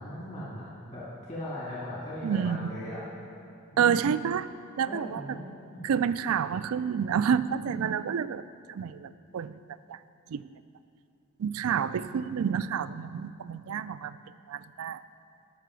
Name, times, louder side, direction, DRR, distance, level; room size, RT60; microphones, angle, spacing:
voice 1, 0.0-3.0 3.7-3.8 4.9-5.8, left 1 dB, 30° left, -8 dB, 1.9 m, -39 dB
voice 2, 2.2-2.7 3.8-4.5 4.8-5.2 5.8-8.4 8.7-9.6 9.9-10.0 10.3-10.5 11.4-14.2 14.5-15.0, right 7 dB, 75° right, 15 dB, 0.3 m, -29 dB
13.5 x 5.9 x 6.2 m, 2.5 s
head